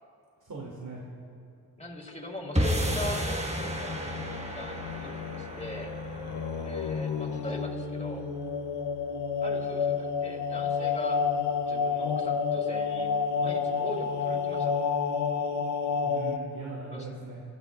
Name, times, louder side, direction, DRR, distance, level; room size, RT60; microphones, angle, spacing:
voice 1, 0.4-1.0 16.0-17.4, right 3 dB, 45° right, -4 dB, 2.7 m, -40 dB
voice 2, 1.8-5.1 5.4-5.9 6.6-8.3 9.4-11.2 11.7-14.8 16.9-17.1, left 2 dB, 15° left, -1 dB, 3.5 m, -40 dB
sound 1, 2.5-8.9, equal, 15° right, 1.6 m, -33 dB
sound 2, 3.6-16.4, left 5 dB, 70° left, 1.1 m, -30 dB
24.5 x 15.0 x 2.6 m, 2.6 s
cardioid pair, 55°, 44 cm